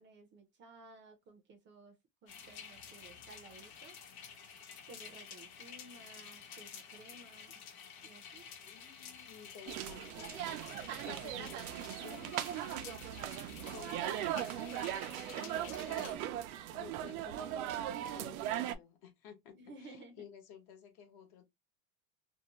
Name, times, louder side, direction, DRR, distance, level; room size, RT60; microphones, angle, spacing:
voice 1, 0.0-4.0 4.9-7.6 8.0-8.5 15.2-16.4 19.6-20.2, right 3 dB, 30° right, 0.5 m, -55 dB
sound 1, 2.3-16.2, left 7 dB, 90° left, 1.0 m, -51 dB
voice 2, 8.6-10.4 10.7-13.1 13.4-15.2 15.8-16.2 16.7-21.4, left 7 dB, 55° left, 1.0 m, -54 dB
sound 2, 9.7-18.8, right 11 dB, 85° right, 0.6 m, -39 dB
2.7 x 2.0 x 2.8 m
supercardioid pair, 140°, 41 cm